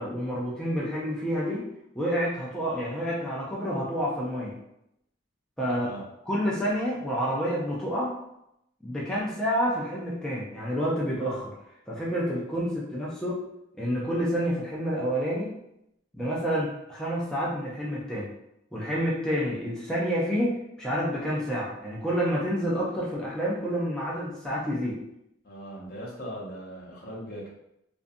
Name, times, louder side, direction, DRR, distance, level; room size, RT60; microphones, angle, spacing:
voice 1, 0.0-1.6 2.0-4.6 5.6-5.9 6.3-8.2 8.8-11.5 11.9-13.4 13.8-15.6 16.1-18.3 18.7-25.0, equal, 5° left, -7 dB, 0.4 m, -29 dB
voice 2, 25.4-27.5, equal, 50° left, -3 dB, 0.7 m, -39 dB
2.5 x 2.2 x 2.5 m, 0.81 s
head